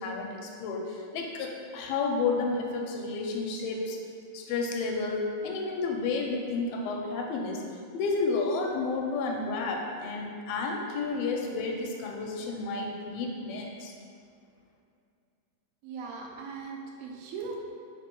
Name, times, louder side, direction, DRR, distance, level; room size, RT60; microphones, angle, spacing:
voice 1, 0.0-4.0 4.3-7.6 7.9-13.9, left 3 dB, 85° left, 1 dB, 2.4 m, -31 dB
voice 2, 15.8-17.6, right 5 dB, 90° right, 0 dB, 2.5 m, -39 dB
5.9 x 3.1 x 5.2 m, 2.4 s
omnidirectional pair, 4.3 m